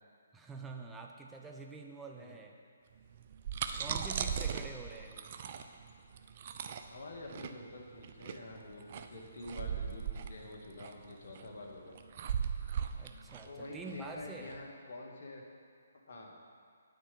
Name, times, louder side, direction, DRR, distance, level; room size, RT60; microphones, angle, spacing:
voice 1, 0.3-2.6 3.8-5.3 12.9-14.6, right 3 dB, 10° right, 1 dB, 0.7 m, -47 dB
sound 1, 3.2-14.6, right 7 dB, 45° right, 0.5 m, -38 dB
voice 2, 3.7-4.5 6.9-12.0 13.4-15.4 16.1-16.4, left 2 dB, 60° left, -1 dB, 1.9 m, -48 dB
9.3 x 4.9 x 7.8 m, 2.1 s
hypercardioid pair, 150°, 0 cm